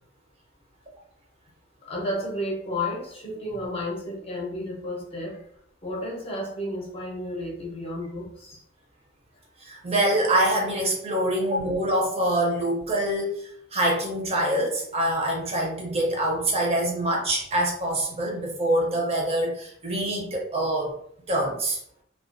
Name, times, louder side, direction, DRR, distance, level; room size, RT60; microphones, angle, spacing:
voice 1, 1.9-5.4 5.8-8.6, left 1 dB, 30° left, -2 dB, 0.6 m, -32 dB
voice 2, 9.6-20.9 21.3-21.8, right 1 dB, 35° right, -1 dB, 0.6 m, -25 dB
2.3 x 2.2 x 2.4 m, 0.67 s
head